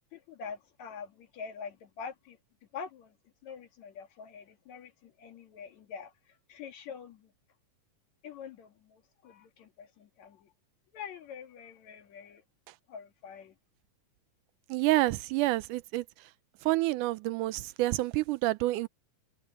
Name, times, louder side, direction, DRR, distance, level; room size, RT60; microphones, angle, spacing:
voice 1, 0.1-2.4 2.7-3.1 3.4-6.1 6.5-7.3 8.2-10.5 10.9-12.4 12.9-13.5, left 6 dB, 65° left, 3.0 m, -45 dB
voice 2, 14.7-16.1 16.6-18.9, right 18 dB, 90° right, 2.2 m, -28 dB
omnidirectional pair, 3.5 m